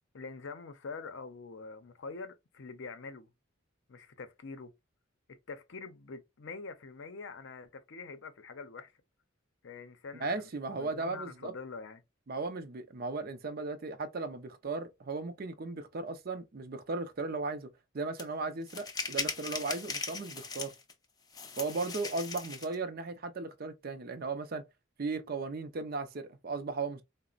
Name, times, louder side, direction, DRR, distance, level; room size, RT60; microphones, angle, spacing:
voice 1, 0.1-3.3 3.9-4.7 5.3-8.9 9.6-12.0, left 4 dB, 60° left, 0.6 m, -45 dB
voice 2, 10.2-11.5 12.3-17.7 17.9-20.7 21.6-24.6 25.0-27.0, right 3 dB, 45° right, 0.5 m, -36 dB
sound 1, 18.2-18.3 18.7-20.9 21.3-22.7, left 4 dB, 20° left, 0.5 m, -38 dB
3.9 x 2.0 x 2.4 m
head